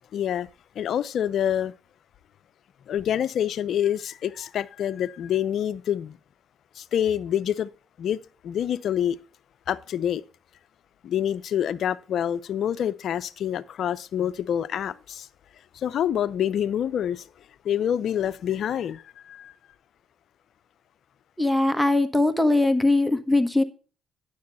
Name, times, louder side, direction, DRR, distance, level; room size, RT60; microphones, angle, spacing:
voice 1, 0.1-0.5 0.8-1.7 2.9-6.2 6.8-7.7 8.0-9.2 9.7-10.2 11.0-15.3 15.7-17.3 17.6-19.5, left 10 dB, 70° left, 0.5 m, -27 dB
voice 2, 21.4-23.6, left 2 dB, ahead, 1.3 m, -21 dB
9.5 x 6.9 x 4.1 m
supercardioid pair, 60°, 0 cm